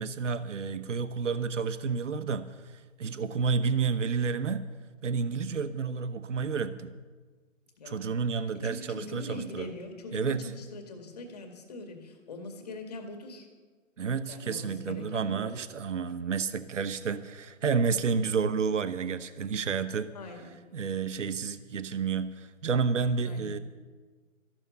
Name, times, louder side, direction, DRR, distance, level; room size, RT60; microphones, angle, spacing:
voice 1, 0.0-4.7 5.0-7.0 7.8-9.7 10.1-10.5 14.0-20.1 20.7-23.6, right 5 dB, 65° right, 13 dB, 1.0 m, -30 dB
voice 2, 7.8-8.1 8.6-13.5 14.3-15.5 20.1-20.6 23.2-23.6, left 2 dB, 30° left, 4 dB, 2.1 m, -42 dB
14.0 x 12.0 x 6.8 m, 1.4 s
hypercardioid pair, 165°, 40 cm